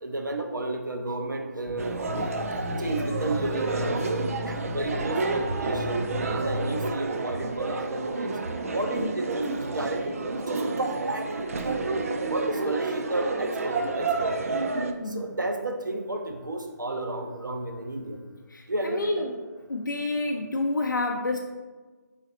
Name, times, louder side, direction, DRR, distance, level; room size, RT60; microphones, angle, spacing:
voice 1, 0.0-2.3 2.8-4.0 4.5-8.4 8.7-11.8 12.3-14.5 15.1-18.2 18.7-19.3, right 2 dB, 90° right, 4 dB, 0.7 m, -32 dB
sound 1, 1.6-6.9, left 2 dB, ahead, 0.6 m, -35 dB
sound 2, 1.8-14.9, right 3 dB, 50° right, 0.4 m, -30 dB
voice 2, 15.0-15.3 18.5-19.4 19.7-21.4, left 2 dB, 85° left, 2 dB, 0.4 m, -29 dB
4.0 x 3.8 x 3.0 m, 1.3 s
figure-of-eight pair, 155°, 10 cm